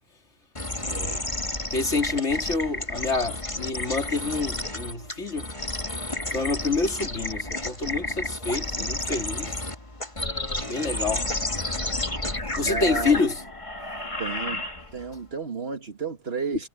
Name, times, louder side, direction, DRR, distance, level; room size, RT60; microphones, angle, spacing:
sound 1, 0.6-15.1, left 1 dB, 25° left, 2.5 m, -31 dB
voice 1, 0.9-1.3 12.6-13.2 14.2-14.7 14.9-16.7, right 4 dB, 60° right, 2.2 m, -32 dB
voice 2, 1.7-5.5 6.3-9.5 10.6-11.3 12.6-13.4, left 3 dB, 80° left, 3.5 m, -27 dB
omnidirectional pair, 1.2 m